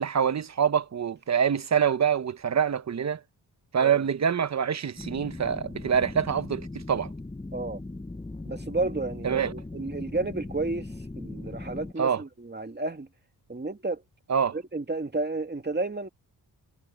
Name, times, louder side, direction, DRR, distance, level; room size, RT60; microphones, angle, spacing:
voice 1, 0.0-3.2 3.7-7.1 9.2-9.5 12.0-12.2 14.3-14.5, right 7 dB, 40° right, 0.8 m, -25 dB
sound 1, 5.0-11.9, left 2 dB, 10° left, 0.8 m, -39 dB
voice 2, 8.5-10.9 11.2-13.1 13.5-14.0 14.5-16.1, right 2 dB, 25° right, 2.3 m, -31 dB
wide cardioid pair, 100°, 43 cm